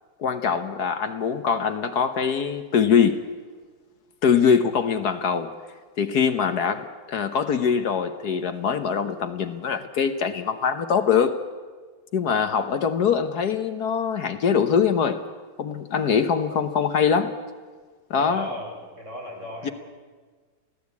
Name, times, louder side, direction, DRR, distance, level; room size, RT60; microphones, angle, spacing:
voice 1, 0.2-3.2 4.2-5.5 6.0-11.4 12.1-15.2 15.6-17.3 18.1-18.5 19.6-19.7, left 7 dB, 65° left, 10 dB, 1.5 m, -23 dB
voice 2, 18.2-19.7, equal, 40° right, 0 dB, 5.1 m, -36 dB
23.0 x 16.5 x 8.3 m, 1.5 s
omnidirectional pair, 1.9 m